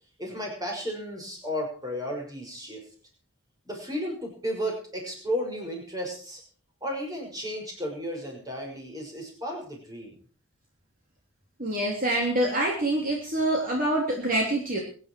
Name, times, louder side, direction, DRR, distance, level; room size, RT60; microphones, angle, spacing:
voice 1, 0.2-2.9 3.6-6.4 6.8-10.2, equal, 15° right, 0 dB, 5.8 m, -33 dB
voice 2, 11.6-14.8, right 1 dB, 40° right, -2 dB, 3.5 m, -26 dB
23.0 x 10.5 x 4.7 m, 0.41 s
head